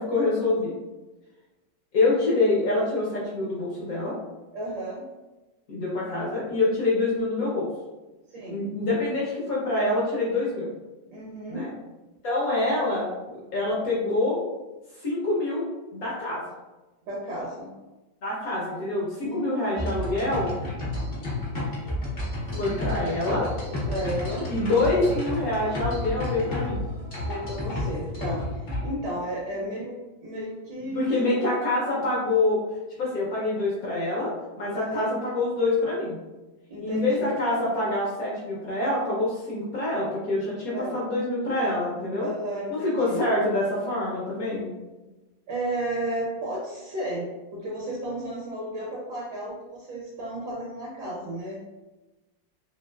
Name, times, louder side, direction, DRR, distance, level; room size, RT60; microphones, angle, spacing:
voice 1, 0.1-0.7 1.9-4.1 5.7-7.7 8.5-10.7 11.5-11.7 12.2-14.4 15.0-15.6 15.9-16.4 18.2-20.5 22.6-23.5 24.5-26.9 30.8-32.6 33.0-34.3 34.6-36.2 36.8-42.3 42.7-44.7, left 2 dB, 65° left, -6 dB, 1.0 m, -26 dB
voice 2, 4.5-5.0 8.3-8.7 11.1-11.7 17.1-17.7 19.2-19.5 22.5-22.8 23.8-24.5 27.3-31.4 34.7-35.1 36.7-37.1 40.7-41.1 42.2-43.2 45.5-51.6, right 1 dB, 70° right, -4 dB, 1.1 m, -33 dB
sound 1, 19.8-28.8, left 1 dB, 50° left, 0.5 m, -31 dB
3.0 x 2.8 x 2.2 m, 1.1 s
omnidirectional pair, 2.1 m